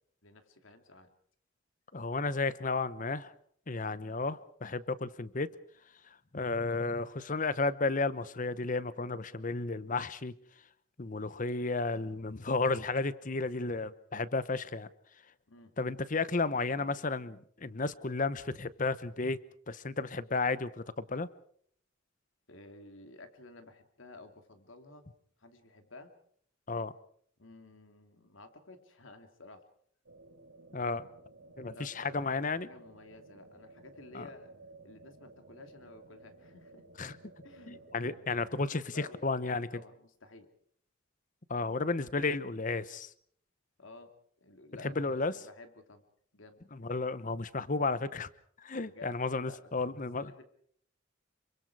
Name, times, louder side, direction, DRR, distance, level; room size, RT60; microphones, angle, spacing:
voice 1, 0.2-1.1 15.5-15.7 22.5-25.1 25.4-26.1 27.4-29.6 31.6-32.3 32.6-34.5 34.8-36.8 37.4-38.2 38.7-40.5 43.8-44.1 44.4-46.0 46.3-46.6 48.8-50.4, left 2 dB, 75° left, 7 dB, 2.7 m, -53 dB
voice 2, 1.9-3.3 3.7-5.5 6.3-10.3 11.0-14.9 15.8-19.4 19.7-21.3 26.7-26.9 30.7-31.1 31.6-32.7 34.1-34.2 37.0-37.1 37.7-38.8 39.2-39.7 41.5-43.1 45.0-45.3 46.8-48.3 48.6-50.3, left 3 dB, 40° left, 16 dB, 0.9 m, -33 dB
sound 1, 30.1-38.5, right 2 dB, 80° right, 3.9 m, -55 dB
27.0 x 24.0 x 4.8 m, 0.62 s
head